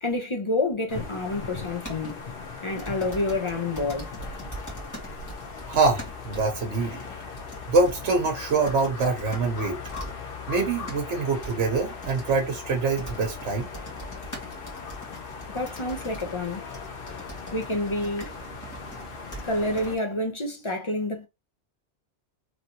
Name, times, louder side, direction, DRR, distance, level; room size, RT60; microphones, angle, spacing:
voice 1, 0.0-2.2 2.6-4.1 15.5-16.7 17.5-18.3 19.4-21.3, left 2 dB, 35° left, 0.5 m, -28 dB
sound 1, 0.9-20.0, left 4 dB, 55° left, 0.9 m, -39 dB
sound 2, 1.8-2.1 2.8-9.5 9.8-10.1 10.6-11.0 11.4-11.5 12.0-12.4 13.0-19.0 19.3-19.4 19.8-19.9, right 1 dB, 15° left, 1.2 m, -42 dB
voice 2, 5.7-7.0 7.7-9.8 10.5-13.7, right 3 dB, 75° right, 1.1 m, -25 dB
3.1 x 2.7 x 2.6 m
omnidirectional pair, 1.2 m